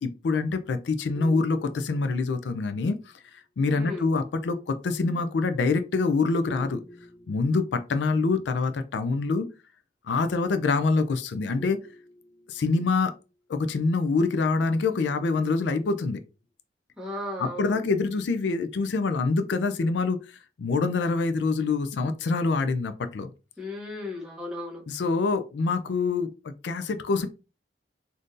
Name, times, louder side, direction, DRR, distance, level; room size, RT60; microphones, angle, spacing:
voice 1, 0.0-3.0 3.3-6.8 7.3-9.5 10.0-11.8 12.5-13.1 13.5-16.2 17.4-23.3 24.9-27.3, left 4 dB, 85° left, 9 dB, 0.4 m, -25 dB
sound 1, 1.1-2.9 6.4-8.3 11.6-13.1 15.0-16.2, equal, 65° left, 1.1 m, -47 dB
voice 2, 3.7-4.1 17.0-17.7 23.6-24.8, left 2 dB, 5° right, -4 dB, 1.2 m, -35 dB
3.6 x 2.6 x 2.5 m, 0.31 s
head